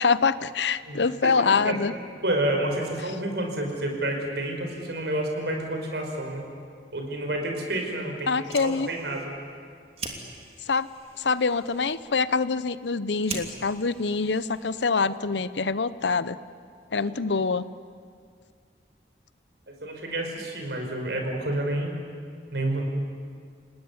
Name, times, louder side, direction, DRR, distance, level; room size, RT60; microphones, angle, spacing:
voice 1, 0.0-1.9 8.3-8.9 10.7-10.9 11.2-16.4 16.9-17.7, left 4 dB, 85° left, 15 dB, 0.8 m, -25 dB
voice 2, 0.9-1.8 2.2-6.4 6.9-8.3 8.6-9.3 17.0-17.1 19.7-22.0 22.5-22.9, right 1 dB, 75° right, 2 dB, 5.3 m, -29 dB
Fire, 8.3-15.2, right 4 dB, 35° right, 2.7 m, -43 dB
29.0 x 19.0 x 9.6 m, 2.2 s
head